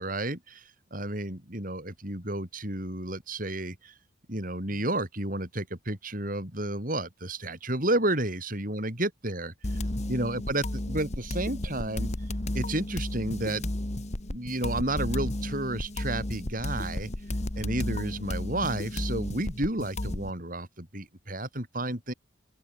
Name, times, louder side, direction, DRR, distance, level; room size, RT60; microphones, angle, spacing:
voice 1, 0.0-3.9 4.3-9.5 10.1-12.1 12.5-13.6 14.3-17.1 17.6-22.1, right 1 dB, 45° right, 7.1 m, -31 dB
sound 1, 9.6-20.3, left 1 dB, 35° left, 1.5 m, -33 dB
open air
head